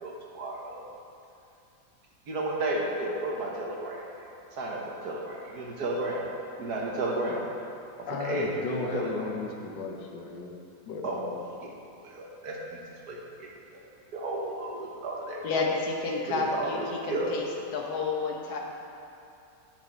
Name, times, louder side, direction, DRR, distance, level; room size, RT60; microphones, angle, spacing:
voice 1, 0.0-0.9 2.3-6.3 6.6-7.4 8.1-9.3 11.0-11.2 11.6-11.7 12.0-12.8 13.1-13.8 14.1-15.4 16.3-17.3, right 2 dB, 65° right, -2 dB, 1.6 m, -33 dB
voice 2, 8.1-10.5 10.9-11.4, left 4 dB, 85° left, 1 dB, 1.5 m, -35 dB
voice 3, 15.4-17.4 17.7-18.6, left 3 dB, 60° left, -1 dB, 1.5 m, -30 dB
10.0 x 6.0 x 4.5 m, 2.6 s
omnidirectional pair, 1.9 m